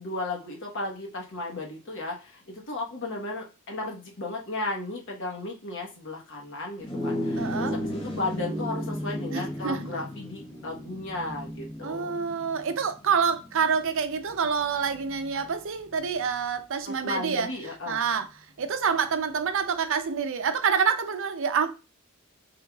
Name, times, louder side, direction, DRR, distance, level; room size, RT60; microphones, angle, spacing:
voice 1, 0.0-12.1 16.8-18.0, left 2 dB, 60° left, 1.2 m, -35 dB
sound 1, 6.8-16.4, equal, 25° left, 0.9 m, -35 dB
voice 2, 7.4-7.7 9.3-9.8 11.8-17.5 17.9-18.2 18.6-21.7, right 6 dB, 65° right, 0.5 m, -27 dB
4.7 x 3.5 x 2.3 m
head